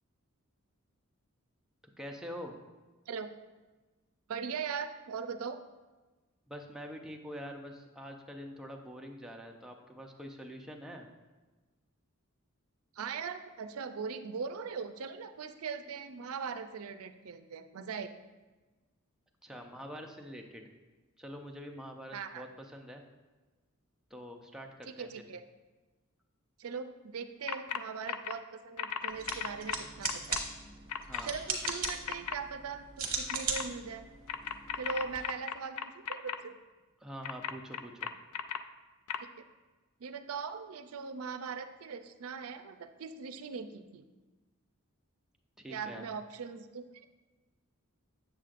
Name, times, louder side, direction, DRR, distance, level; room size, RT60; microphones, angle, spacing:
voice 1, 2.0-2.6 6.5-11.1 19.4-20.7 21.2-23.0 24.1-25.1 31.1-31.3 37.0-38.1 45.6-46.1, equal, 5° right, 1 dB, 0.6 m, -45 dB
voice 2, 4.3-5.6 13.0-18.1 22.1-22.5 24.9-25.4 26.6-30.5 31.2-34.1 34.8-36.6 39.2-39.4 40.0-44.0 45.7-47.1, right 5 dB, 80° right, 9 dB, 0.5 m, -40 dB
sound 1, 27.5-27.8 28.1-28.3 28.8-30.4 30.9-31.2 31.6-32.3 33.3-33.6 34.3-36.4 37.2-38.6 39.1-39.2, left 8 dB, 75° left, 0.4 m, -35 dB
sound 2, 29.1-35.2, right 5 dB, 45° right, 1.1 m, -39 dB
7.6 x 7.3 x 2.5 m, 1.2 s
head